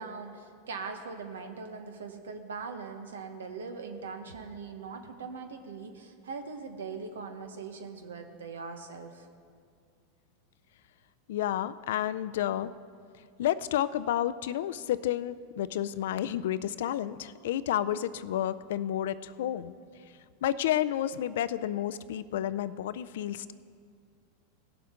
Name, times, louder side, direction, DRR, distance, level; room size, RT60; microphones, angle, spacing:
voice 1, 0.0-9.3, right 4 dB, 90° right, 6 dB, 1.1 m, -41 dB
voice 2, 11.3-12.7 13.4-19.7 20.4-23.5, left 11 dB, 75° left, 16 dB, 0.4 m, -30 dB
17.5 x 7.0 x 3.7 m, 2.2 s
hypercardioid pair, 110°, 0 cm